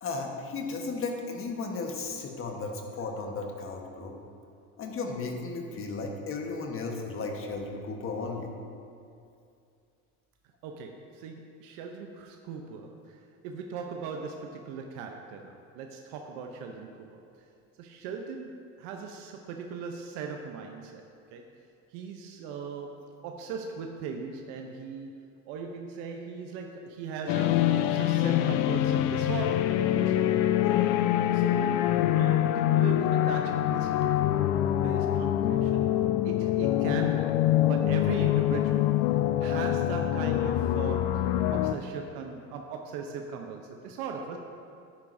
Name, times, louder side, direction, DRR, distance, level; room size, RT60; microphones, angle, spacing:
voice 1, 0.0-4.1 4.8-8.5, left 3 dB, 35° left, 2 dB, 1.3 m, -35 dB
voice 2, 10.6-17.2 17.8-21.0 21.3-21.5 21.9-30.4 31.3-35.9 36.2-37.4 37.7-39.0 39.4-44.4, right 5 dB, 75° right, 3 dB, 0.8 m, -39 dB
sound 1, 27.3-41.8, left 12 dB, 60° left, 0.5 m, -25 dB
10.5 x 9.6 x 2.7 m, 2.5 s
supercardioid pair, 110°, 37 cm